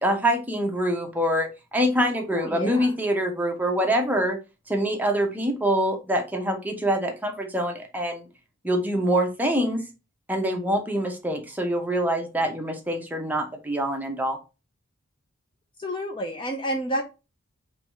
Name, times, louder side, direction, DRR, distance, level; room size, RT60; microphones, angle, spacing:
voice 1, 0.0-4.4 4.7-8.3 8.6-9.9 10.3-14.4, equal, 10° right, 3 dB, 0.7 m, -25 dB
voice 2, 2.3-2.9 15.8-17.0, equal, 25° left, 3 dB, 0.5 m, -29 dB
3.4 x 3.1 x 4.6 m, 0.29 s
head